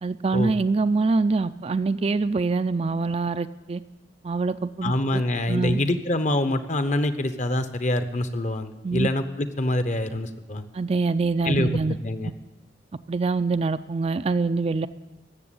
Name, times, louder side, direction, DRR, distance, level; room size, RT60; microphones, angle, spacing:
voice 1, 0.0-3.8 4.2-5.2 5.5-5.8 8.8-9.1 10.7-12.0 13.1-14.9, right 3 dB, 35° right, 11 dB, 0.4 m, -24 dB
voice 2, 4.8-10.7 11.4-12.3, left 1 dB, 40° left, 10 dB, 0.9 m, -25 dB
15.0 x 7.2 x 10.0 m, 1.1 s
head